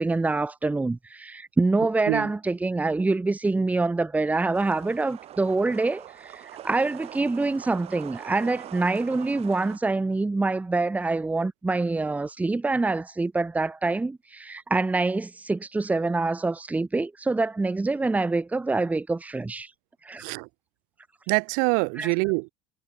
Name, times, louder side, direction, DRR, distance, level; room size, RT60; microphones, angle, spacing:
voice 1, 0.0-19.7 20.0-20.2 22.0-22.1, right 3 dB, 10° right, 1.4 m, -26 dB
sound 1, 4.5-9.8, right 12 dB, 45° right, 7.0 m, -43 dB
voice 2, 21.3-22.5, right 37 dB, 70° right, 2.3 m, -25 dB
supercardioid pair, 115°, 14 cm